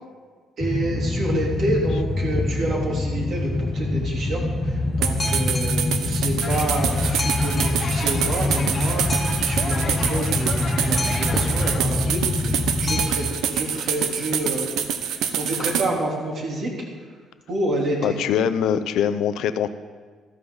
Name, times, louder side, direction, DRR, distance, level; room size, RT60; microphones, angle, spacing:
Boat Water vehicle, 0.6-13.1, left 2 dB, 20° left, 1.2 m, -25 dB
voice 1, 0.6-14.7 15.1-16.7 17.5-18.2, right 1 dB, 55° right, -2 dB, 3.4 m, -28 dB
sound 1, 5.0-15.9, right 8 dB, 85° right, 0.9 m, -26 dB
sound 2, 6.4-11.8, left 5 dB, 35° left, 0.9 m, -34 dB
voice 2, 18.0-19.7, left 8 dB, 75° left, 11 dB, 0.6 m, -22 dB
13.5 x 13.0 x 4.0 m, 1.5 s
cardioid pair, 130°, 0 cm